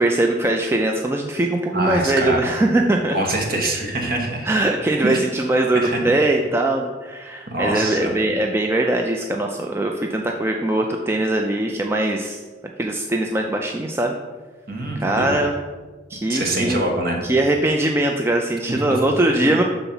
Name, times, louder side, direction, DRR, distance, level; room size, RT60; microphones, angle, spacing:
voice 1, 0.0-3.2 4.5-12.4 12.8-14.2 15.0-15.5 16.1-16.8 17.2-19.6, right 1 dB, 15° right, 2 dB, 0.3 m, -21 dB
voice 2, 1.7-2.4 3.1-4.5 5.0-5.2 5.7-6.0 7.5-8.1 14.7-15.4 16.3-17.2 18.7-18.8, right 1 dB, 50° right, 1 dB, 1.2 m, -24 dB
5.4 x 4.0 x 5.7 m, 1.3 s
head